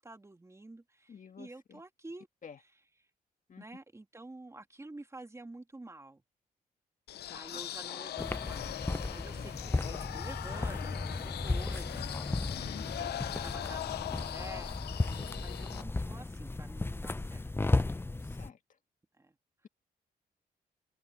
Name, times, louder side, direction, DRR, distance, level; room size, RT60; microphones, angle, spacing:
voice 1, 0.0-2.3 3.6-6.2 7.3-12.6 13.0-17.5 19.2-19.3, right 2 dB, 15° right, 2.7 m, -50 dB
voice 2, 1.1-1.8 2.4-2.6 3.5-3.6 7.3-7.6 12.2-12.9 15.4-15.5 18.2-18.6, left 7 dB, 50° left, 1.7 m, -51 dB
sound 1, 7.1-15.8, left 12 dB, 80° left, 0.6 m, -40 dB
sound 2, 8.2-18.5, left 2 dB, 15° left, 0.6 m, -35 dB
open air
cardioid pair, 80°, 17 cm